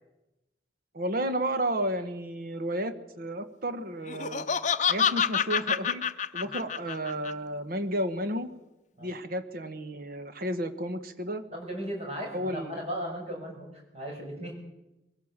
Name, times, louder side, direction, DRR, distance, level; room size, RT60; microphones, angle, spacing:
voice 1, 0.9-4.5 4.9-6.0 6.3-8.5 9.0-11.4 12.3-12.8, right 1 dB, 55° right, 9 dB, 1.4 m, -32 dB
Laughter, 4.1-7.3, left 7 dB, 45° left, 0.7 m, -27 dB
voice 2, 11.5-14.5, equal, 35° right, 1 dB, 6.5 m, -36 dB
22.0 x 16.0 x 7.4 m, 0.98 s
head